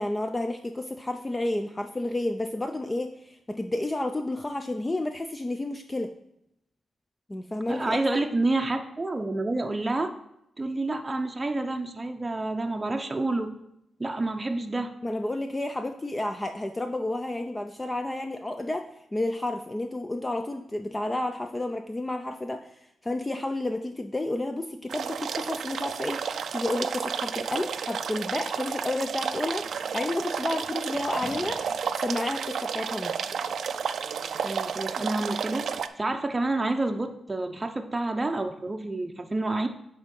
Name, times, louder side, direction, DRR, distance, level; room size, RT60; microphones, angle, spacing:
voice 1, 0.0-6.1 7.3-8.2 15.0-29.7 29.9-31.7 32.0-33.1, left 1 dB, 20° left, 6 dB, 0.5 m, -31 dB
voice 2, 7.7-10.1 10.6-13.5 14.0-14.9 34.4-39.7, right 2 dB, 25° right, 4 dB, 0.6 m, -29 dB
sound 1, 24.9-35.9, right 7 dB, 75° right, 0.4 m, -32 dB
sound 2, 30.9-33.3, left 2 dB, 60° left, 2.0 m, -44 dB
7.9 x 3.6 x 5.3 m, 0.79 s
cardioid pair, 70°, 0 cm